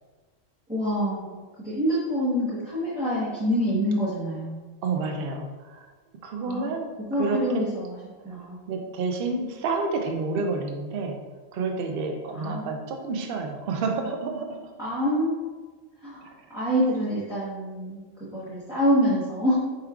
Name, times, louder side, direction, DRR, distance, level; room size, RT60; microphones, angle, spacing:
voice 1, 0.7-1.3 1.6-4.6 6.5-6.8 7.1-8.0 8.2-8.7 12.3-12.8 14.8-15.5 16.0-16.2 16.5-18.0 18.3-19.5, equal, 5° right, -11 dB, 0.8 m, -26 dB
voice 2, 4.8-5.8 6.2-6.9 7.2-7.6 8.7-11.2 11.5-14.6 16.2-16.3, right 3 dB, 60° right, 3 dB, 0.7 m, -29 dB
4.8 x 3.1 x 2.3 m, 1.3 s
omnidirectional pair, 1.3 m